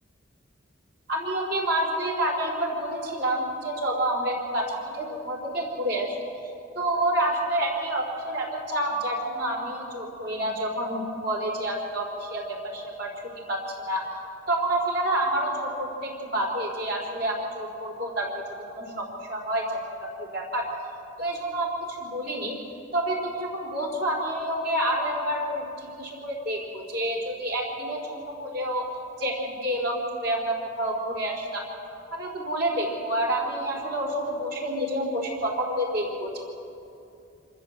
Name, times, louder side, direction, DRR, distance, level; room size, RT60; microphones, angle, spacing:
voice 1, 1.1-6.2 6.7-13.1 13.5-14.0 14.5-18.4 18.7-20.6 21.2-22.6 22.9-28.9 29.2-31.6 32.1-36.4, right 1 dB, 55° right, -1 dB, 4.3 m, -28 dB
27.0 x 14.0 x 7.9 m, 2.7 s
head